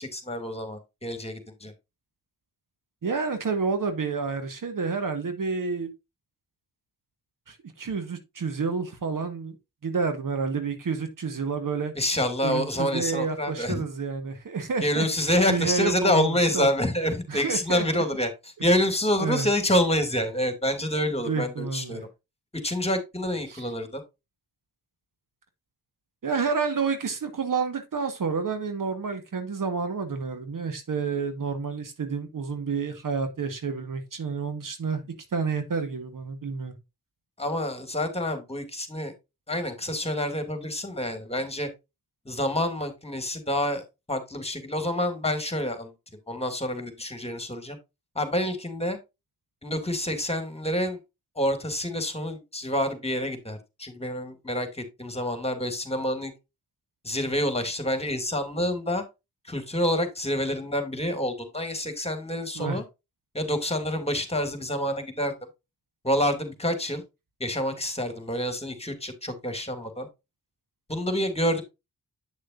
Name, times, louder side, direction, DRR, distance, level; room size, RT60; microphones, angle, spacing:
voice 1, 0.0-1.7 12.0-13.8 14.8-22.1 22.6-24.0 37.4-39.1 39.5-41.7 42.3-45.9 46.3-47.8 48.2-49.0 49.6-51.0 51.4-56.3 57.0-59.0 59.5-62.8 63.3-65.3 66.0-67.0 67.4-70.1 70.9-71.6, left 1 dB, 15° left, 2.3 m, -27 dB
voice 2, 3.0-5.9 7.5-9.6 9.8-11.9 12.4-15.1 15.5-16.7 17.3-18.0 19.2-19.5 21.2-22.0 23.5-23.6 26.2-35.0 35.3-36.7 62.5-62.8, right 5 dB, 55° right, 1.5 m, -29 dB
8.9 x 6.5 x 2.5 m
supercardioid pair, 45°, 38 cm